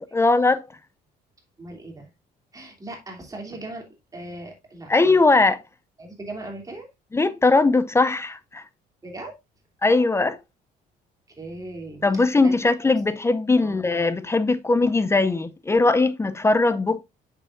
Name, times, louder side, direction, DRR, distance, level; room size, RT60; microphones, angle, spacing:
voice 1, 0.1-0.7 4.9-5.6 7.1-8.6 9.8-10.4 12.0-17.0, left 3 dB, 15° left, 0.5 m, -20 dB
voice 2, 1.6-2.1 2.5-3.9 4.1-5.2 6.0-6.9 9.0-9.4 11.4-12.1 12.4-12.6 13.6-13.9, right 2 dB, 20° right, 2.8 m, -38 dB
7.4 x 6.6 x 2.5 m
cardioid pair, 110°, 17 cm